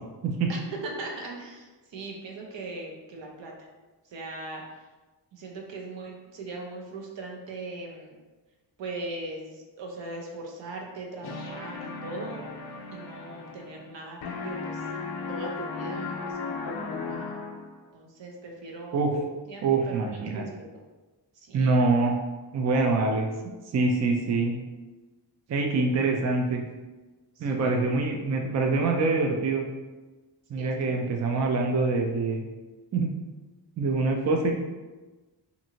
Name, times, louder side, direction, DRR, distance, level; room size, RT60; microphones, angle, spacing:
voice 1, 0.5-3.5 4.1-4.6 5.3-8.2 8.8-12.4 12.9-14.8 15.3-17.4 17.9-19.1 19.5-20.5 21.3-21.7 27.4-27.8 30.6-31.2, right 2 dB, 75° right, 0 dB, 0.7 m, -39 dB
sound 1, 11.2-14.0 14.2-17.8, left 4 dB, 55° left, 0.6 m, -36 dB
voice 2, 19.6-20.5 21.5-22.1 22.5-23.3 23.7-24.6 25.5-26.6 27.4-29.6 30.5-32.5 32.9-33.1 33.8-34.5, right 3 dB, 40° right, 2 dB, 0.4 m, -25 dB
2.6 x 2.6 x 2.8 m, 1.2 s
cardioid pair, 65°, 44 cm